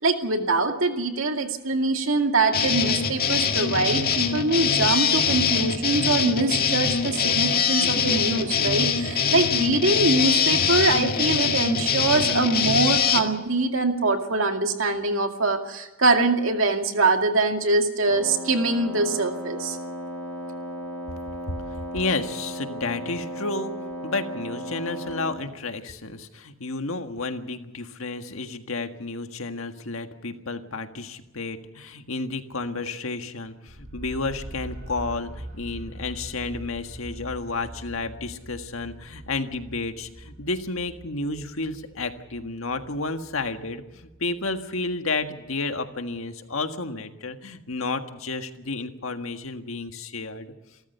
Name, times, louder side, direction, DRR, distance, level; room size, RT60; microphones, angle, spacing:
voice 1, 0.0-19.8, right 3 dB, 70° right, 4 dB, 2.3 m, -23 dB
sound 1, 2.5-13.2, left 6 dB, 50° left, 2.0 m, -23 dB
Wind instrument woodwind instrument, 18.1-25.5, equal, 10° left, 5.9 m, -35 dB
voice 2, 21.9-23.7 24.0-50.5, left 3 dB, 80° left, 6 dB, 1.7 m, -31 dB
sound 2, 33.7-45.5, right 1 dB, 40° right, 4.2 m, -43 dB
28.0 x 14.0 x 6.9 m, 1.1 s
head